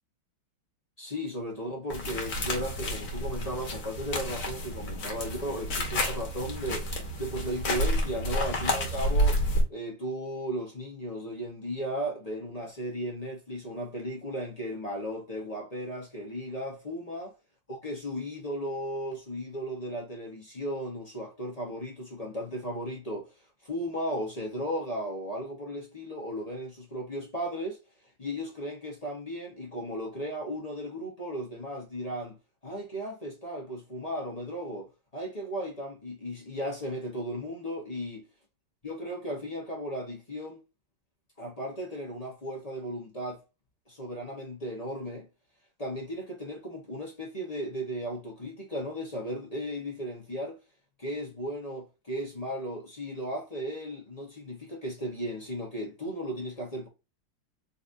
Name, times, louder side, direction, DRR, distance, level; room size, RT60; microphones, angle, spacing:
voice 1, 1.0-6.9 7.2-9.4 9.7-17.3 17.8-23.3 23.6-27.8 28.2-32.4 32.6-38.3 38.8-40.6 41.4-43.4 43.9-45.3 45.8-50.6 51.0-56.9, equal, 30° left, 0.8 m, -35 dB
sound 1, 1.9-9.6, equal, 50° left, 1.4 m, -30 dB
4.0 x 2.8 x 2.5 m
omnidirectional pair, 2.2 m